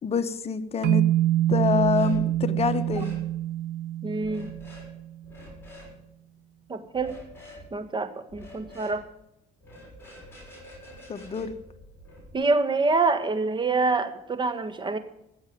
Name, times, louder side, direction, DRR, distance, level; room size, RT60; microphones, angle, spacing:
voice 1, 0.0-1.0 1.5-3.2 11.1-11.5, left 6 dB, 35° left, 9 dB, 1.1 m, -26 dB
sound 1, 0.8-5.1, right 13 dB, 75° right, 0.6 m, -26 dB
sound 2, 1.5-2.2 2.5-3.2 4.2-4.9 5.2-5.9 6.9-7.7 8.3-9.0 9.6-12.3, left 1 dB, 15° left, 6.3 m, -47 dB
voice 2, 4.0-4.5 6.7-7.1 7.7-9.0 12.3-15.0, right 3 dB, 30° right, 9 dB, 1.6 m, -26 dB
15.0 x 7.2 x 9.3 m, 0.82 s
cardioid pair, 110°, 17 cm